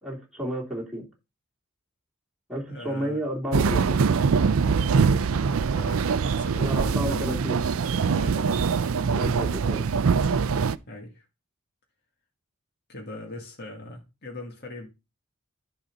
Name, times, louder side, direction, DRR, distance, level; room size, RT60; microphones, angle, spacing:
voice 1, 0.0-1.0 2.5-4.0 6.6-7.6 9.1-9.8, equal, ahead, 3.1 m, -31 dB
voice 2, 2.7-3.2 4.7-7.3 8.0-8.9 10.9-11.3 12.9-14.9, left 1 dB, 50° left, 2.0 m, -41 dB
sound 1, 3.5-10.8, right 5 dB, 70° right, 0.5 m, -23 dB
10.5 x 4.2 x 5.3 m
head